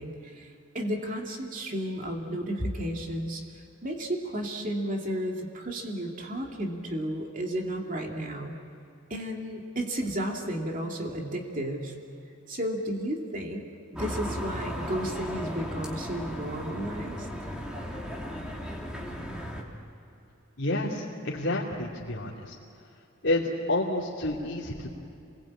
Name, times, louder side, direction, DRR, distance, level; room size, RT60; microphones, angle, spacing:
voice 1, 0.0-3.4 3.8-8.6 9.1-11.9 12.5-13.7 14.0-17.3, equal, 40° right, 0 dB, 2.5 m, -33 dB
sound 1, 14.0-19.6, equal, 5° right, 2.7 m, -36 dB
voice 2, 20.6-22.5 23.2-24.9, left 1 dB, 65° left, -6 dB, 2.7 m, -29 dB
28.5 x 20.5 x 8.6 m, 2.6 s
head